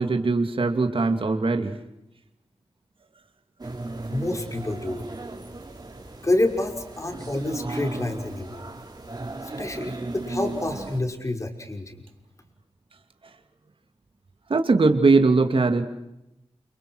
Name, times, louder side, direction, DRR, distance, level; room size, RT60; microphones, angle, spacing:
voice 1, 0.0-1.8 14.5-15.9, right 3 dB, 60° right, 5 dB, 2.6 m, -20 dB
sound 1, 3.6-11.0, right 2 dB, 40° right, 5.1 m, -36 dB
voice 2, 4.1-5.0 6.2-8.7 9.6-12.0, left 2 dB, 30° left, 3 dB, 5.6 m, -28 dB
29.5 x 29.0 x 6.4 m, 0.89 s
wide cardioid pair, 95°, 10 cm